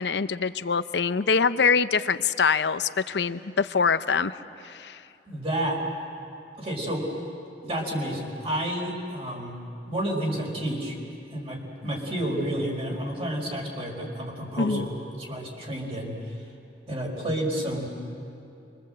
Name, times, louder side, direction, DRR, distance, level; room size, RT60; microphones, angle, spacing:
voice 1, 0.0-4.4 4.6-5.0 14.6-14.9, left 5 dB, 70° left, 13 dB, 0.7 m, -24 dB
voice 2, 5.3-5.8 6.6-7.1 7.6-9.6 9.9-11.0 11.3-16.1 16.9-17.9, right 1 dB, 35° right, -1 dB, 4.8 m, -30 dB
27.0 x 24.0 x 7.9 m, 2.6 s
head